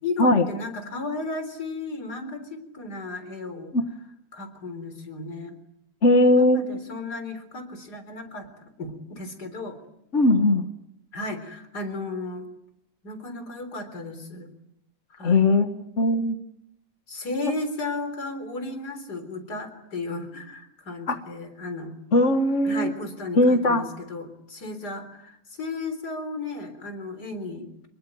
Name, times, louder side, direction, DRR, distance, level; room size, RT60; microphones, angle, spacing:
voice 1, 0.0-3.7 4.3-5.5 6.2-9.8 11.1-12.5 13.0-14.5 15.1-15.4 17.1-21.9 22.6-27.9, left 3 dB, 70° left, 8 dB, 4.4 m, -34 dB
voice 2, 6.0-6.6 10.1-10.6 15.2-16.4 21.1-21.2 22.1-22.9 23.4-23.8, left 2 dB, 45° left, 6 dB, 1.7 m, -19 dB
26.0 x 22.0 x 9.2 m, 0.80 s
omnidirectional pair, 1.8 m